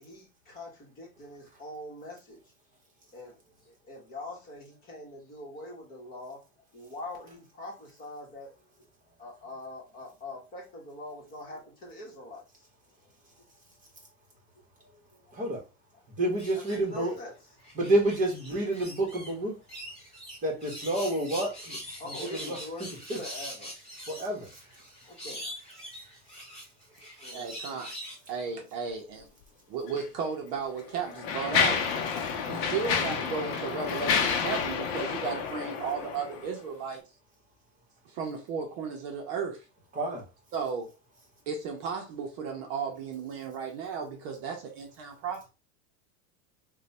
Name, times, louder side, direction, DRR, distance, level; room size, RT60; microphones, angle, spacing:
voice 1, 0.0-2.4 3.1-3.4 3.6-6.4 6.7-8.5 9.2-12.4 14.8-15.2 16.7-17.3 22.0-22.9 23.2-23.7 25.1-25.5 27.2-27.8, left 2 dB, 25° left, -2 dB, 1.2 m, -43 dB
voice 2, 15.3-15.6 16.2-17.1 17.7-19.5 20.4-21.8 22.0-23.2 24.1-24.5 39.9-40.2, right 1 dB, 20° right, -1 dB, 1.1 m, -29 dB
sound 1, 16.4-17.1 17.6-19.3 19.7-28.2, equal, 5° left, 2.0 m, -43 dB
voice 3, 27.3-27.9 28.3-29.3 29.7-31.8 32.4-37.0 38.1-39.6 40.5-40.9 41.5-45.4, right 6 dB, 45° right, 3 dB, 0.7 m, -34 dB
Mechanisms, 29.9-30.0 30.8-36.5, left 6 dB, 50° left, 0.7 m, -29 dB
3.1 x 2.3 x 4.0 m, 0.29 s
supercardioid pair, 170°, 39 cm